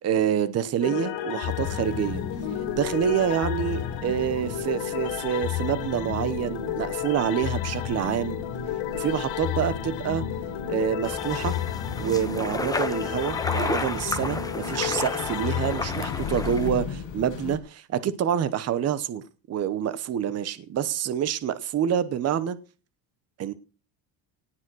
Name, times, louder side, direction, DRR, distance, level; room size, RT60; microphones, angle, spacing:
voice 1, 0.0-2.2 2.7-8.4 8.9-10.2 10.7-11.5 12.0-22.6 23.4-23.5, right 9 dB, 30° right, 1.0 m, -27 dB
sound 1, 0.8-16.9, left 10 dB, 85° left, 4.3 m, -31 dB
sound 2, 1.5-17.6, left 6 dB, 40° left, 8.0 m, -40 dB
sound 3, 11.0-16.7, left 3 dB, 10° left, 1.2 m, -32 dB
18.5 x 7.3 x 6.2 m
cardioid pair, 180°, 46 cm